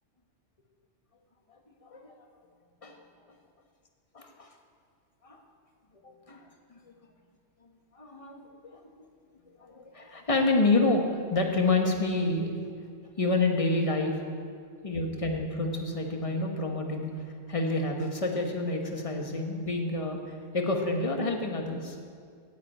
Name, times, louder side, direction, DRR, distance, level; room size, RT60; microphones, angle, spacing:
voice 1, 1.8-2.1 2.8-3.0 4.1-4.5 5.2-5.4 5.9-6.4 6.8-6.9 7.9-8.8 9.6-12.5 13.2-14.2 14.8-22.0, left 2 dB, 30° left, 3 dB, 1.3 m, -28 dB
9.9 x 8.1 x 8.8 m, 2.2 s
omnidirectional pair, 1.2 m